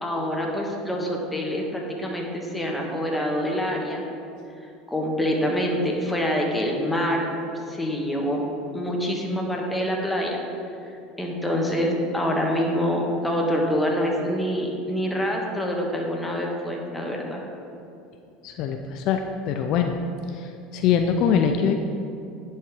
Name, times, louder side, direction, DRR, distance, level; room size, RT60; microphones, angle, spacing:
voice 1, 0.0-4.0 4.9-7.3 7.7-8.4 8.7-10.4 11.2-17.4, equal, 10° left, -1 dB, 1.4 m, -26 dB
voice 2, 18.4-19.9 20.3-21.8, left 7 dB, 60° left, 5 dB, 0.4 m, -23 dB
10.5 x 4.4 x 3.5 m, 2.6 s
hypercardioid pair, 85°, 0 cm